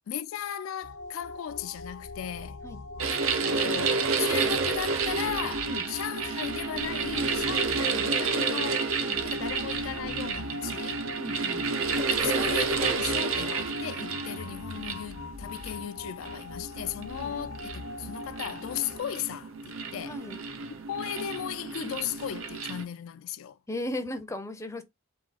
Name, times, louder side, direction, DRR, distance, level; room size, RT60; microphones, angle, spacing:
voice 1, 0.1-2.6 3.1-8.9 9.2-11.0 11.9-20.2 20.9-23.6, left 9 dB, 80° left, 0.4 m, -36 dB
sound 1, 0.8-19.0, left 3 dB, 60° left, 0.7 m, -42 dB
sound 2, 3.0-22.8, right 4 dB, 75° right, 0.6 m, -30 dB
voice 2, 11.2-11.7 17.2-17.4 20.0-20.4 23.7-24.8, left 1 dB, 15° left, 0.5 m, -36 dB
3.6 x 2.9 x 4.0 m
head